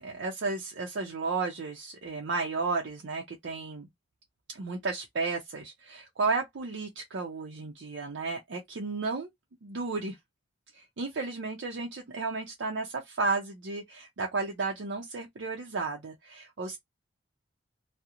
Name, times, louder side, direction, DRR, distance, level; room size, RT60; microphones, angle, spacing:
voice 1, 0.0-3.9 4.5-9.3 9.6-10.2 10.7-16.8, right 3 dB, 65° right, 0.5 m, -33 dB
2.4 x 2.0 x 2.8 m
head